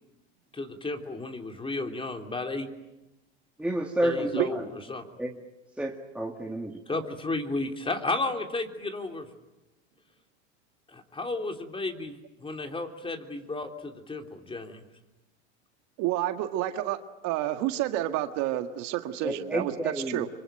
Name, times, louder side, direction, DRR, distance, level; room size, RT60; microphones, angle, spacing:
voice 1, 0.5-2.7 4.0-5.1 6.9-9.3 10.9-14.8, left 2 dB, 15° left, 5 dB, 3.4 m, -33 dB
voice 2, 3.6-4.3 5.2-5.4 5.8-6.7 19.2-20.2, right 1 dB, 5° right, 1 dB, 2.0 m, -30 dB
voice 3, 16.0-17.0 17.2-20.3, right 14 dB, 55° right, 8 dB, 1.8 m, -29 dB
25.5 x 24.5 x 9.1 m, 0.97 s
hypercardioid pair, 95°, 35 cm